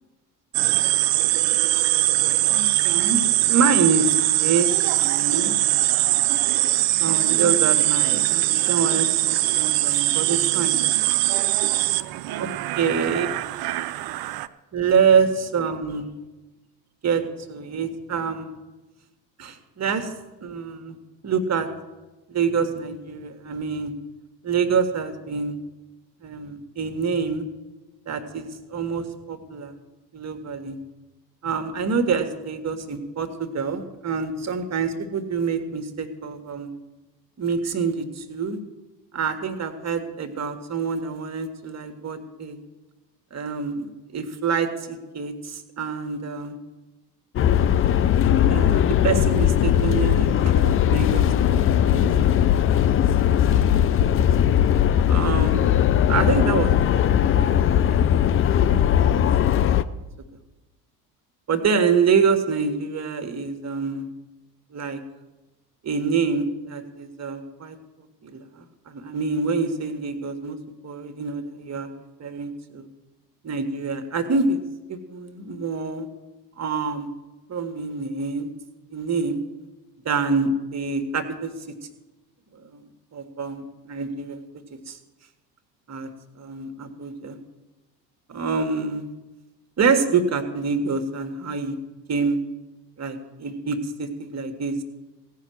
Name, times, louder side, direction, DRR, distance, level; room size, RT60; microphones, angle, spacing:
sound 1, 0.5-14.5, right 16 dB, 45° right, 0.6 m, -21 dB
voice 1, 2.5-3.2 3.5-5.5 6.9-10.8 12.4-12.5 12.8-13.3 14.7-16.2 17.0-18.6 19.4-20.1 20.4-21.0 21.2-21.7 22.3-23.9 24.4-25.6 26.2-27.5 28.1-29.7 30.1-30.8 31.4-36.7 37.4-38.6 39.1-42.6 43.3-46.6 48.5-52.8 54.0-54.2 55.1-55.8 56.1-58.2 58.5-59.2 59.5-59.6 61.5-64.1 64.7-65.0 65.8-67.8 68.2-70.6 70.8-71.9 72.2-72.9 73.4-74.6 74.9-76.1 76.6-77.1 77.5-78.5 78.9-79.4 80.0-81.5 82.5-82.8 83.1-84.4 84.9-85.0 85.9-86.1 86.4-87.4 88.3-89.1 89.8-91.8 92.1-92.4 93.0-94.8, right 5 dB, 30° right, 7 dB, 1.6 m, -26 dB
sound 2, 47.4-59.8, left 10 dB, 30° left, 0.5 m, -19 dB
16.0 x 5.7 x 7.8 m, 1.1 s
hypercardioid pair, 70°, 49 cm